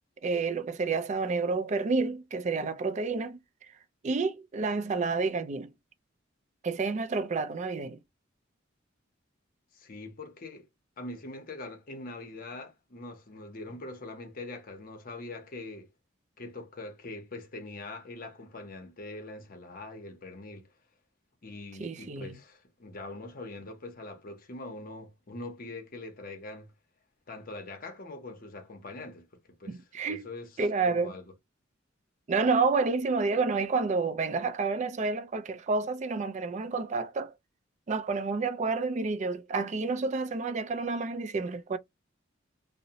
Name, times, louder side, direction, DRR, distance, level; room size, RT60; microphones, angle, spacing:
voice 1, 0.2-3.4 4.0-5.7 6.6-8.0 21.8-22.4 29.7-30.3 30.6-31.1 32.3-37.3 37.9-41.8, right 4 dB, 35° right, 0.3 m, -29 dB
voice 2, 9.7-10.7 11.0-15.9 16.4-20.7 21.4-26.7 27.3-30.5 30.8-31.2, left 2 dB, 45° left, 0.7 m, -43 dB
2.6 x 2.0 x 2.8 m
head